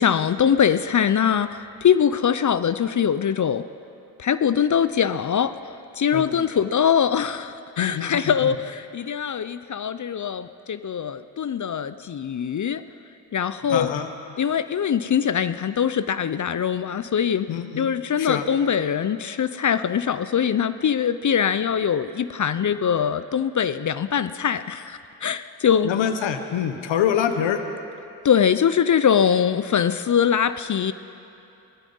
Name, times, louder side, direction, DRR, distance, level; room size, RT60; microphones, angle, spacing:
voice 1, 0.0-3.6 4.2-12.8 13.3-13.9 14.4-17.5 17.8-25.9 28.2-30.9, left 8 dB, 45° left, 14 dB, 0.5 m, -22 dB
voice 2, 6.1-6.5 7.8-8.6 13.7-14.1 17.5-17.9 18.2-18.5 25.8-27.6, left 9 dB, 90° left, 8 dB, 0.9 m, -25 dB
16.5 x 13.0 x 5.5 m, 2.8 s
supercardioid pair, 50°, 44 cm